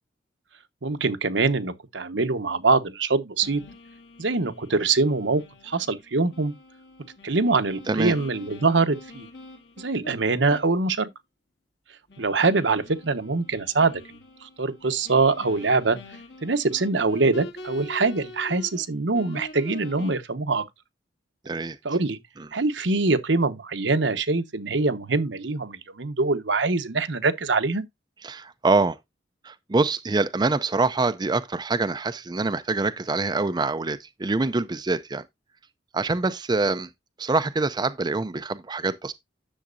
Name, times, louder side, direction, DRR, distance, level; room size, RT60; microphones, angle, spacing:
voice 1, 0.8-3.6 4.2-6.5 7.2-9.3 9.8-11.1 12.2-14.0 14.4-16.0 16.4-20.6 21.8-22.2 22.5-27.8, right 3 dB, 80° right, 1.1 m, -24 dB
sound 1, 3.4-10.1 10.5-10.8 11.1-11.2 12.1-18.9 19.1-20.1, left 2 dB, 65° left, 2.1 m, -45 dB
voice 2, 21.5-21.8 22.4-22.5 28.2-29.0 29.4-35.2 35.9-36.9 37.2-39.1, right 3 dB, 25° right, 0.5 m, -25 dB
10.0 x 7.2 x 2.5 m
head